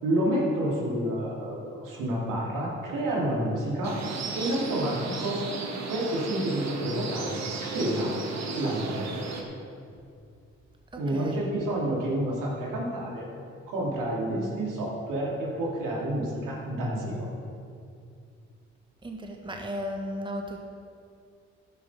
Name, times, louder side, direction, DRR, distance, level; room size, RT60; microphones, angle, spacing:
voice 1, 0.0-4.0 4.3-5.4 5.9-8.2 8.6-9.1 11.0-13.3 13.7-17.3, right 1 dB, 70° right, -4 dB, 2.7 m, -29 dB
sound 1, 3.8-9.4, right 4 dB, 55° right, 1.4 m, -35 dB
voice 2, 10.9-11.5 19.0-20.6, equal, 15° right, 2 dB, 1.2 m, -35 dB
10.5 x 7.0 x 5.5 m, 2.4 s
hypercardioid pair, 45°, 33 cm